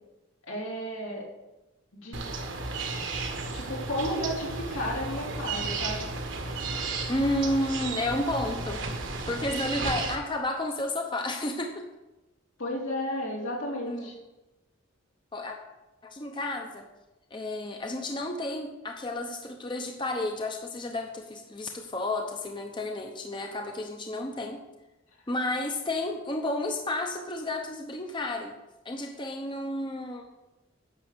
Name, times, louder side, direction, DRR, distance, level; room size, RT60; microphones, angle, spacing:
voice 1, 0.5-1.3 1.9-2.2 3.5-6.1 12.6-14.1, equal, 85° left, -3 dB, 3.3 m, -33 dB
sound 1, 2.1-10.2, right 3 dB, 65° right, 1.4 m, -33 dB
voice 2, 7.1-8.8 9.3-11.9 13.9-14.1 15.3-15.6 16.0-16.9 17.3-24.6 25.3-28.6 28.8-30.3, left 1 dB, 25° left, 3 dB, 0.8 m, -31 dB
10.0 x 6.5 x 6.7 m, 1.0 s
head